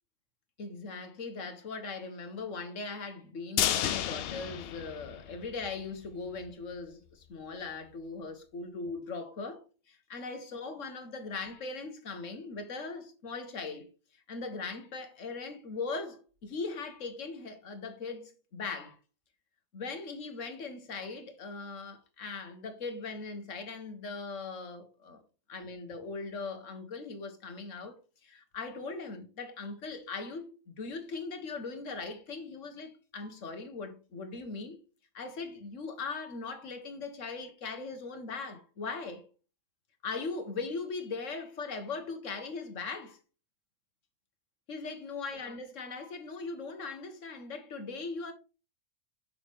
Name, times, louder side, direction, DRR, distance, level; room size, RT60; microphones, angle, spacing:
voice 1, 0.6-13.9 14.3-19.0 19.7-25.2 25.5-34.8 35.1-39.2 40.0-43.2 44.7-48.3, left 4 dB, 60° left, 1.4 m, -39 dB
sound 1, 3.6-5.7 6.0-6.1 6.5-6.6, left 11 dB, 80° left, 0.5 m, -32 dB
6.5 x 5.8 x 3.4 m
omnidirectional pair, 1.6 m